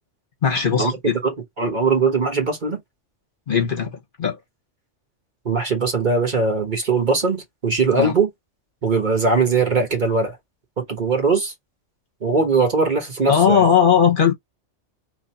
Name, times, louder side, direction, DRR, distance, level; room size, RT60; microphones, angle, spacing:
voice 1, 0.4-1.2 3.5-4.4 8.0-8.1 13.3-14.3, left 7 dB, 45° left, 1.1 m, -18 dB
voice 2, 1.2-2.8 5.4-8.3 8.8-10.4 10.8-11.5 12.2-13.6, right 4 dB, 40° right, 1.2 m, -20 dB
3.0 x 2.6 x 4.0 m
omnidirectional pair, 1.2 m